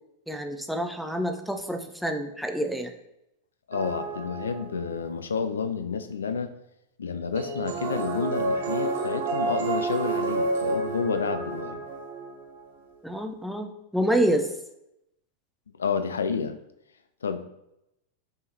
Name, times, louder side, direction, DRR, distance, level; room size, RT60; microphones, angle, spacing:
voice 1, 0.3-2.9 13.0-14.5, right 1 dB, ahead, 5 dB, 0.4 m, -27 dB
voice 2, 3.7-6.5 7.0-11.8 15.8-16.6 17.2-17.5, left 5 dB, 70° left, 9 dB, 0.3 m, -30 dB
sound 1, 3.7-5.0 7.3-12.6, right 3 dB, 55° right, 0.5 m, -30 dB
5.2 x 3.5 x 2.8 m, 0.86 s
figure-of-eight pair, 90°, 0 cm